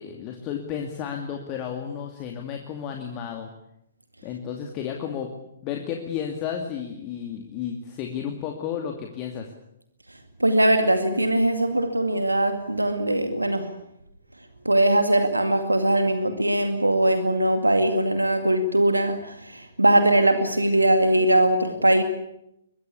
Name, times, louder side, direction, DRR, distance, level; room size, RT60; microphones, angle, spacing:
voice 1, 0.0-3.5 4.2-5.4 5.6-9.5, left 8 dB, 25° left, 3 dB, 2.5 m, -32 dB
voice 2, 10.4-13.7 14.7-22.0, right 1 dB, 80° right, 8 dB, 2.2 m, -21 dB
22.5 x 22.0 x 8.4 m, 0.81 s
figure-of-eight pair, 125°, 0 cm